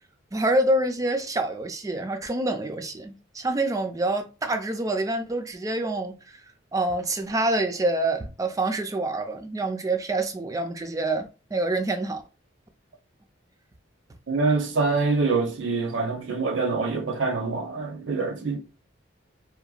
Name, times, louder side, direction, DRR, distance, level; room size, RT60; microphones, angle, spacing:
voice 1, 0.3-6.1 6.7-12.2, right 2 dB, 20° right, 0.3 m, -26 dB
voice 2, 14.3-18.6, right 4 dB, 70° right, 0.7 m, -25 dB
2.8 x 2.1 x 2.4 m
head